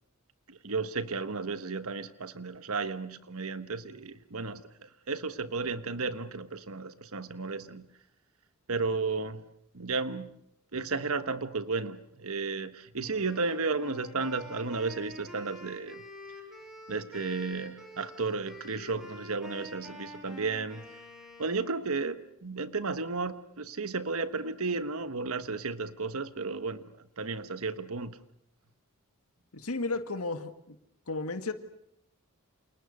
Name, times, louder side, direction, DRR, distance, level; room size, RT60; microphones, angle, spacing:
voice 1, 0.5-7.9 8.7-9.4 9.7-10.3 10.7-16.0 16.9-20.8 21.4-26.8 27.2-28.2, right 4 dB, 70° right, 1.3 m, -33 dB
Wind instrument woodwind instrument, 13.0-21.8, left 1 dB, ahead, 7.9 m, -47 dB
voice 2, 29.5-30.8 31.1-31.5, left 3 dB, 90° left, 1.9 m, -33 dB
29.0 x 28.5 x 6.7 m
head